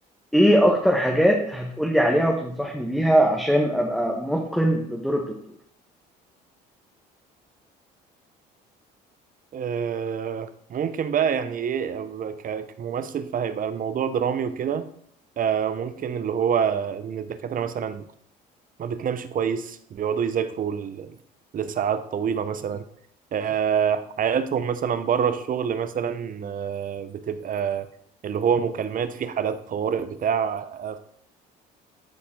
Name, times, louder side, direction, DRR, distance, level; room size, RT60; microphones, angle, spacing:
voice 1, 0.3-5.2, equal, ahead, 0 dB, 1.3 m, -21 dB
voice 2, 9.5-14.9 15.4-18.1 18.8-21.1 21.5-22.8 23.3-27.9 28.2-31.0, right 7 dB, 45° right, 12 dB, 0.8 m, -26 dB
11.5 x 4.2 x 3.8 m, 0.66 s
supercardioid pair, 75°, 20 cm